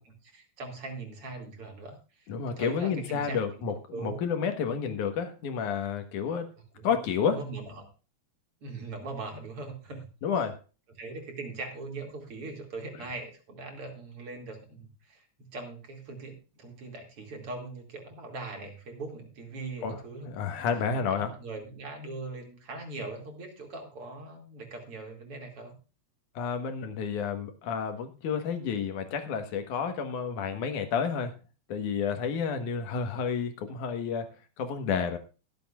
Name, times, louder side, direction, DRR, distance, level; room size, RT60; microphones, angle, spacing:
voice 1, 0.0-3.4 3.9-4.2 6.7-7.0 7.3-7.9 8.6-10.1 11.0-20.6 21.1-25.8, right 3 dB, 50° right, 2 dB, 3.4 m, -41 dB
voice 2, 2.3-6.5 6.8-7.4 10.2-10.6 19.8-20.0 20.2-21.3 26.4-31.3 31.7-34.3 34.6-35.2, left 6 dB, 85° left, 7 dB, 3.0 m, -30 dB
23.0 x 7.9 x 2.5 m, 0.33 s
omnidirectional pair, 3.4 m